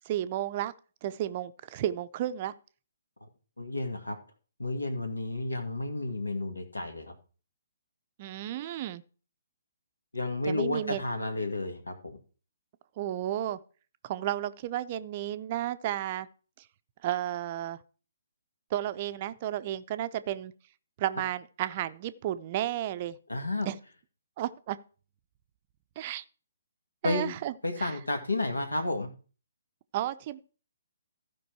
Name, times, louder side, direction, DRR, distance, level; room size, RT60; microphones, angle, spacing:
voice 1, 0.1-0.7 1.0-2.5 8.2-9.0 10.5-11.0 13.0-13.6 14.0-16.3 17.0-17.8 18.7-20.5 21.0-23.2 23.7-23.8 24.4-24.8 26.0-26.2 27.0-28.0 29.9-30.4, right 12 dB, 35° right, 0.6 m, -32 dB
voice 2, 3.6-4.2 4.6-7.1 10.1-12.2 23.3-23.7 27.0-27.4 27.6-29.1, left 2 dB, 80° left, 2.0 m, -31 dB
14.5 x 5.3 x 4.7 m
figure-of-eight pair, 130°, 0 cm